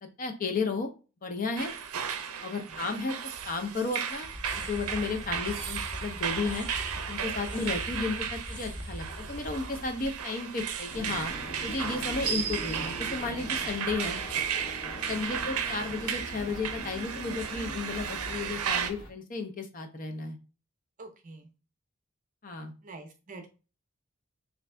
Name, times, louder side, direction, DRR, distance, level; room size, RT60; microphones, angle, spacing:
voice 1, 0.0-0.9 1.2-1.7 2.4-3.2 3.4-4.3 4.5-6.7 7.1-11.3 11.6-14.2 15.1-20.4 22.4-22.7, left 3 dB, 40° left, 5 dB, 0.5 m, -33 dB
sound 1, 1.6-18.9, right 8 dB, 85° right, 0.5 m, -35 dB
sound 2, 4.2-11.1, equal, 20° left, 0.9 m, -42 dB
sound 3, 10.9-19.1, right 1 dB, 75° left, 1.0 m, -42 dB
voice 2, 15.0-15.4 21.0-21.5 22.8-23.5, right 3 dB, 35° right, 5 dB, 0.6 m, -47 dB
3.5 x 2.5 x 3.2 m, 0.33 s
head